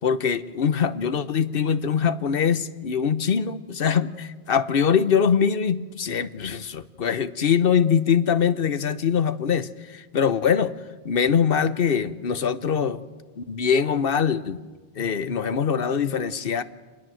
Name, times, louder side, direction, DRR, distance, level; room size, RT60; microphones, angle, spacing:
voice 1, 0.0-10.7 11.0-13.0 13.4-14.6 15.0-16.6, left 7 dB, 60° left, 13 dB, 1.1 m, -23 dB
27.0 x 20.5 x 7.7 m, 1.3 s
omnidirectional pair, 1.1 m